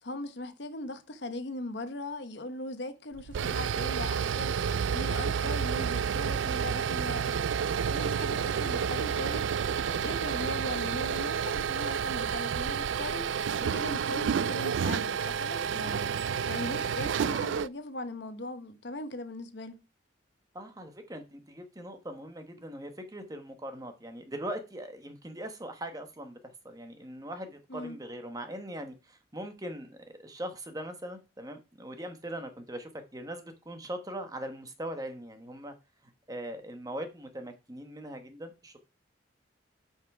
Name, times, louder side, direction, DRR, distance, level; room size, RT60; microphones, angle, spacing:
voice 1, 0.0-7.5 7.9-9.5 9.9-16.1 16.4-19.8 27.7-28.0, left 2 dB, 65° left, 1.0 m, -39 dB
sound 1, 3.1-17.7, right 7 dB, 80° right, 0.4 m, -30 dB
voice 2, 20.5-35.7 36.3-38.8, right 1 dB, 20° right, 1.1 m, -41 dB
8.1 x 5.7 x 4.7 m
head